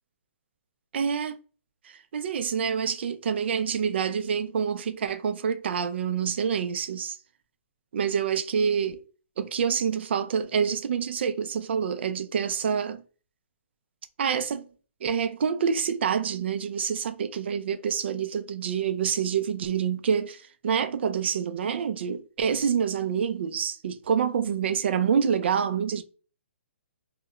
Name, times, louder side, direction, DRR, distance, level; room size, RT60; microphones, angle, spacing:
voice 1, 0.9-1.4 1.8-7.2 7.9-9.0 9.4-13.0 14.2-14.7 15.0-26.0, right 7 dB, 55° right, 0.3 m, -27 dB
2.3 x 2.1 x 2.9 m
hypercardioid pair, 155°, 7 cm